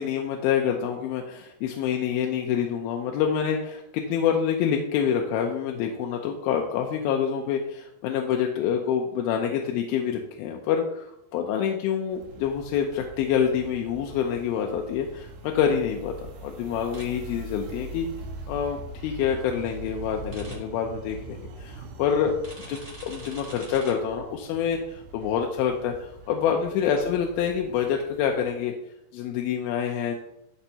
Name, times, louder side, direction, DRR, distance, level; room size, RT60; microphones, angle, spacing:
voice 1, 0.0-18.1 18.5-28.7 29.1-30.2, left 8 dB, 80° left, 2 dB, 2.4 m, -27 dB
sound 1, 12.1-28.4, right 2 dB, 90° right, 2.9 m, -42 dB
sound 2, 16.9-17.0 20.3-20.5 22.4-23.9, right 2 dB, 35° right, 0.9 m, -44 dB
13.0 x 4.4 x 2.8 m, 0.82 s
omnidirectional pair, 4.4 m